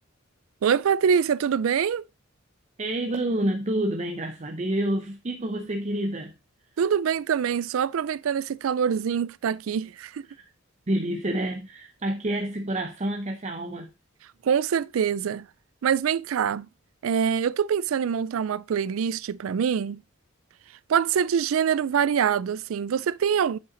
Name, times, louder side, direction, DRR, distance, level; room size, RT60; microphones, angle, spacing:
voice 1, 0.6-2.1 6.8-10.3 14.4-15.5 15.8-16.7 17.0-20.0 20.9-23.6, right 7 dB, 90° right, 0.4 m, -24 dB
voice 2, 2.8-6.3 10.4-10.5 10.9-13.9, right 1 dB, 35° right, 0.7 m, -28 dB
7.6 x 5.7 x 3.8 m
head